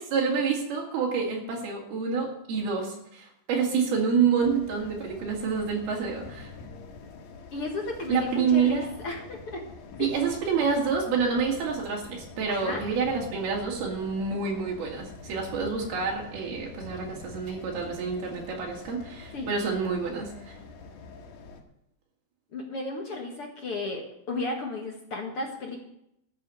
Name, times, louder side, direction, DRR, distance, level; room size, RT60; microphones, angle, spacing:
voice 1, 0.1-6.5 8.1-8.9 10.0-20.6, right 5 dB, 90° right, -1 dB, 4.4 m, -28 dB
sound 1, 4.4-21.6, left 4 dB, 80° left, 3.6 m, -45 dB
voice 2, 7.5-9.7 10.0-10.1 12.5-12.8 19.3-19.5 22.5-25.8, left 2 dB, 50° left, 1 dB, 1.9 m, -34 dB
13.5 x 7.5 x 7.9 m, 0.78 s
omnidirectional pair, 4.3 m